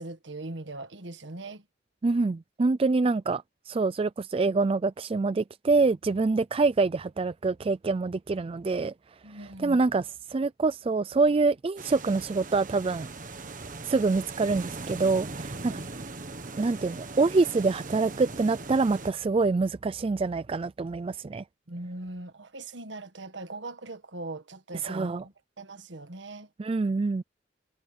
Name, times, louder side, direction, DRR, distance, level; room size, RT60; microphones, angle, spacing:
voice 1, 0.0-1.6 9.2-9.8 15.7-15.9 21.7-26.5, right 2 dB, 75° right, 1.6 m, -40 dB
voice 2, 2.0-8.9 9.6-13.1 13.8-15.8 16.6-21.4 24.8-25.2 26.6-27.2, right 3 dB, 30° right, 0.4 m, -26 dB
sound 1, 11.8-19.1, right 3 dB, 45° right, 1.5 m, -40 dB
head